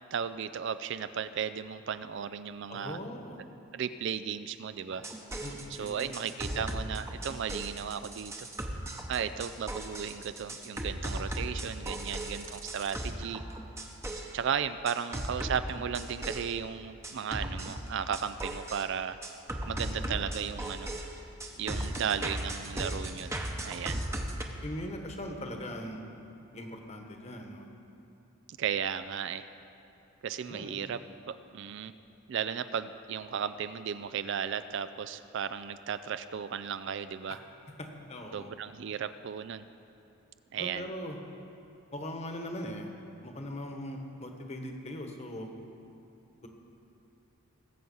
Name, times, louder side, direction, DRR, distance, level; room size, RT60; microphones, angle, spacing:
voice 1, 0.1-3.0 3.7-5.1 5.8-8.5 9.1-13.4 14.1-19.2 19.7-20.9 21.6-23.3 23.6-24.0 28.5-29.5 30.2-31.0 31.3-31.9 32.3-37.4 38.3-39.7 40.5-40.9, right 7 dB, 55° right, 12 dB, 0.3 m, -35 dB
voice 2, 2.7-3.4 5.4-6.1 6.4-6.6 20.0-20.3 24.6-26.0 26.5-27.7 30.5-30.8 37.3-37.4 37.8-38.5 40.6-41.2 41.9-42.9 43.2-45.5 46.4-46.5, left 1 dB, 30° left, 3 dB, 1.2 m, -40 dB
sound 1, 4.9-14.4 14.9-16.5 17.0-18.8 19.2-24.4, right 1 dB, 10° right, 0.8 m, -37 dB
20.0 x 7.8 x 5.5 m, 2.9 s
head